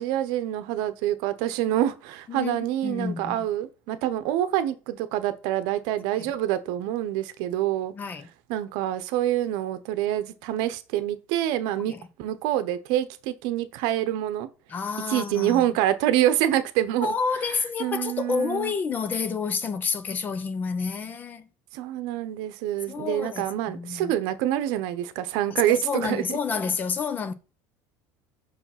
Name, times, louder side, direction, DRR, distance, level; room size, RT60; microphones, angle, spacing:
voice 1, 0.0-7.9 8.5-14.5 15.1-17.1 17.8-18.7 21.7-26.4, right 12 dB, 70° right, 0.9 m, -26 dB
voice 2, 2.3-3.5 6.2-6.3 7.9-8.3 11.9-12.1 14.7-15.8 17.0-21.5 22.9-24.1 25.7-27.3, left 5 dB, 25° left, 0.6 m, -29 dB
5.8 x 4.9 x 5.8 m
cardioid pair, 165°, 8 cm